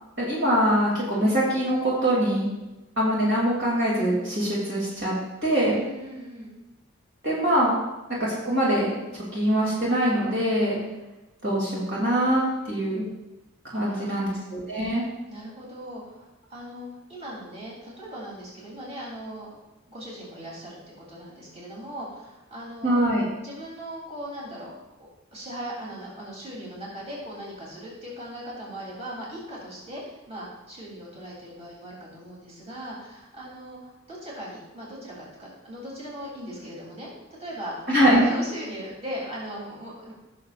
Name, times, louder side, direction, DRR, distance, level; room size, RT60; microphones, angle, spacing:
voice 1, 0.2-2.5 3.0-5.1 5.4-5.8 7.2-7.8 8.2-8.9 9.3-10.8 11.4-13.0 13.7-15.0 22.8-23.2 37.9-38.3, right 1 dB, 55° right, -5 dB, 2.8 m, -23 dB
voice 2, 5.7-6.5 13.7-14.4 15.3-19.6 19.9-23.0 23.4-24.7 25.3-37.1 37.4-40.1, equal, 30° right, -5 dB, 3.3 m, -39 dB
17.0 x 6.7 x 2.5 m, 1.0 s
head